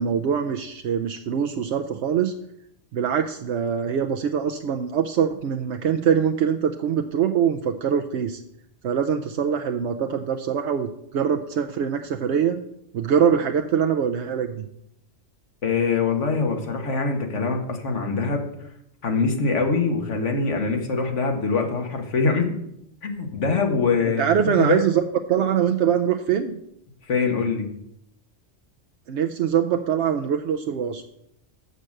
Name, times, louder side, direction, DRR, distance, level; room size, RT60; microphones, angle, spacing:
voice 1, 0.0-2.3 2.9-8.4 8.8-12.6 12.9-14.6 24.2-26.5 29.1-31.0, right 8 dB, 75° right, 4 dB, 0.9 m, -23 dB
voice 2, 15.6-18.4 19.0-22.6 23.0-24.8 27.1-27.7, left 4 dB, 90° left, 4 dB, 1.8 m, -23 dB
6.5 x 6.5 x 7.5 m, 0.76 s
omnidirectional pair, 1.2 m